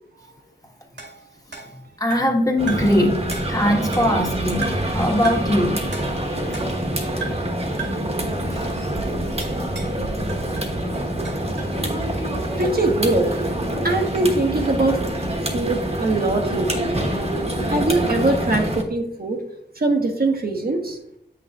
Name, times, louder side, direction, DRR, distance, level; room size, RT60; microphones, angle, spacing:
sound 1, 1.0-2.4 2.7-3.0 3.3-4.3 4.6-5.0 5.2-5.6 5.9-6.9 7.2-7.5 7.8-8.1 9.4-10.0 10.3-11.8, right 5 dB, 75° right, 1.9 m, -36 dB
voice 1, 2.0-5.8 8.5-8.8, left 1 dB, 20° left, 0 dB, 1.4 m, -21 dB
sound 2, 2.6-18.8, right 1 dB, 35° right, 1.2 m, -25 dB
voice 2, 12.6-13.3 13.8-15.0 15.5-17.0 17.7-19.4 19.8-21.0, right 2 dB, 55° right, 2 dB, 1.1 m, -22 dB
8.1 x 6.1 x 2.4 m, 0.76 s
wide cardioid pair, 60°, 19 cm